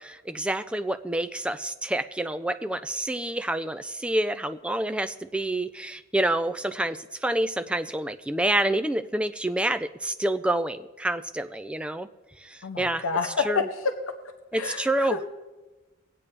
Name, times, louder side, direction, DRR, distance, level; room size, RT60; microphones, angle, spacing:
voice 1, 0.0-12.1 12.4-13.6 14.5-15.2, right 1 dB, 5° right, 10 dB, 0.3 m, -28 dB
voice 2, 12.6-13.6 14.5-15.2, left 5 dB, 80° left, 6 dB, 0.7 m, -29 dB
20.5 x 8.4 x 3.3 m, 1.2 s
head